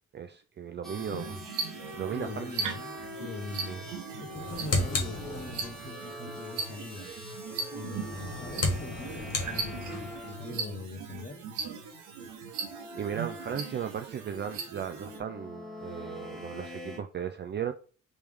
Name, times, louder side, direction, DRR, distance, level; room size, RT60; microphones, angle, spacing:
voice 1, 0.1-1.4 1.9-2.5 3.7-3.8 12.9-17.7, right 8 dB, 35° right, 0.4 m, -36 dB
sound 1, 0.8-10.7 12.5-14.0 14.8-17.0, left 1 dB, ahead, 1.4 m, -45 dB
sound 2, 0.9-15.2, right 5 dB, 85° right, 1.0 m, -39 dB
voice 2, 2.1-3.8 4.2-7.1 7.7-11.4, left 3 dB, 25° left, 0.9 m, -42 dB
sound 3, 4.2-5.9 7.9-10.2, left 2 dB, 55° left, 1.4 m, -33 dB
3.3 x 3.1 x 3.4 m
cardioid pair, 90°, 30 cm